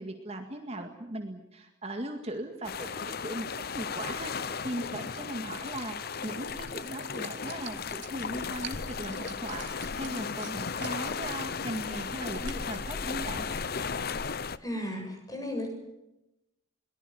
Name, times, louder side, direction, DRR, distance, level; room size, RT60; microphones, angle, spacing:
voice 1, 0.0-3.5 3.7-6.0 6.2-13.5, right 1 dB, 35° right, 4 dB, 2.0 m, -38 dB
sound 1, 2.6-14.6, left 5 dB, 50° left, 0.8 m, -35 dB
sound 2, 4.1-12.8, right 7 dB, 70° right, 2.4 m, -50 dB
voice 2, 14.6-15.7, left 1 dB, 20° left, 3 dB, 7.0 m, -35 dB
22.5 x 19.5 x 9.4 m, 0.92 s
head